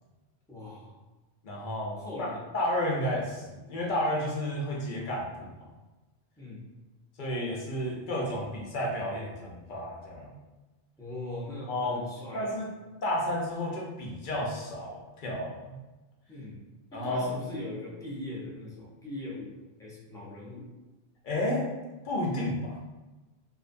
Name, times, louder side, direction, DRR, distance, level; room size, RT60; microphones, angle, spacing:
voice 1, 0.5-0.9 2.0-2.4 6.4-6.6 11.0-12.6 16.3-16.6 16.9-20.7, left 2 dB, 5° left, -7 dB, 0.4 m, -40 dB
voice 2, 1.4-2.3 2.5-5.6 7.2-10.3 11.7-12.0 12.3-12.7 13.0-15.8 16.9-17.3 21.2-21.7 22.0-22.7, left 1 dB, 55° left, -3 dB, 0.7 m, -31 dB
2.6 x 2.1 x 2.5 m, 1.1 s
omnidirectional pair, 1.1 m